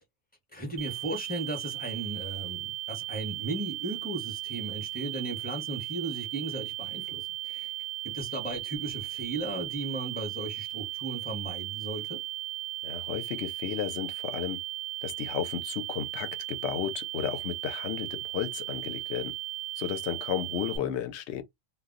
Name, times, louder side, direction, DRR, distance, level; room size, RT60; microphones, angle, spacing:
voice 1, 0.5-7.7 8.0-12.2, right 2 dB, 10° left, 0.8 m, -36 dB
sound 1, 0.8-20.8, right 17 dB, 60° right, 0.7 m, -37 dB
voice 2, 12.8-14.6 15.0-19.3 19.8-21.4, left 9 dB, 70° left, 0.9 m, -33 dB
2.2 x 2.1 x 3.6 m
omnidirectional pair, 1.2 m